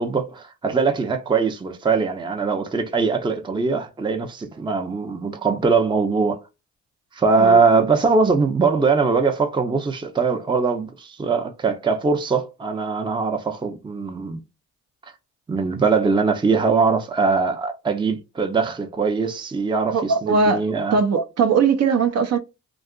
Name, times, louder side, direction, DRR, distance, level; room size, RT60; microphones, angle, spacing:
voice 1, 0.0-6.4 7.1-14.4 15.5-21.0, right 4 dB, 15° right, 0.5 m, -21 dB
voice 2, 19.9-22.4, right 5 dB, 55° right, 0.7 m, -20 dB
2.8 x 2.3 x 2.3 m
cardioid pair, 90°, 30 cm